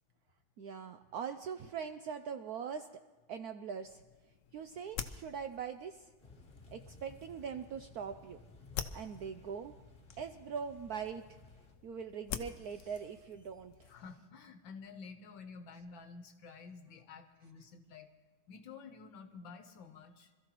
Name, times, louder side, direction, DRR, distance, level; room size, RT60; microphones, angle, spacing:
voice 1, 0.6-2.9 3.3-4.0 4.5-6.1 6.7-8.4 8.9-9.7 10.2-11.4 11.8-13.9, right 7 dB, 80° right, 8 dB, 0.8 m, -42 dB
sound 1, 3.8-14.1, left 8 dB, 90° left, 0.6 m, -48 dB
Thunder / Rain, 6.2-11.7, left 3 dB, 30° left, 1.8 m, -58 dB
voice 2, 13.9-18.1 18.5-20.3, left 5 dB, 70° left, 7 dB, 1.6 m, -51 dB
26.0 x 14.5 x 3.0 m, 1.3 s
omnidirectional pair, 2.2 m